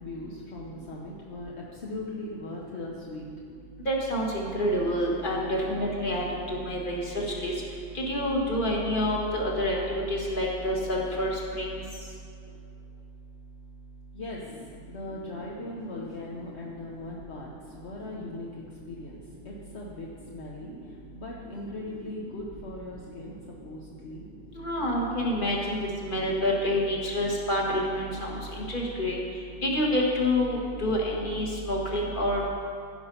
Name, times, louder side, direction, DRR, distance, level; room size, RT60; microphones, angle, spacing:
voice 1, 0.0-3.3 12.5-12.6 14.1-23.4 23.6-24.3 24.7-24.9 25.6-25.8, left 2 dB, 45° left, -3 dB, 0.9 m, -39 dB
voice 2, 3.8-7.0 7.3-7.5 7.9-11.7 24.5-29.2 29.6-32.6, left 1 dB, 25° left, -2 dB, 1.6 m, -28 dB
15.5 x 5.5 x 5.5 m, 2.4 s
omnidirectional pair, 2.2 m